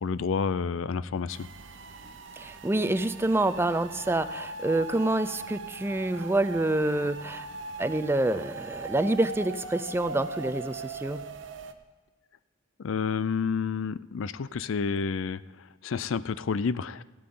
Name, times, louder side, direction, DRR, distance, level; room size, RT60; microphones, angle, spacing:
voice 1, 0.0-1.5 12.8-17.0, left 5 dB, 80° left, 17 dB, 0.5 m, -30 dB
sound 1, 1.3-11.7, right 3 dB, 65° right, 0.9 m, -40 dB
voice 2, 2.4-7.5 7.8-11.2, right 1 dB, 10° right, 12 dB, 0.5 m, -27 dB
15.0 x 12.5 x 3.8 m, 1.3 s
head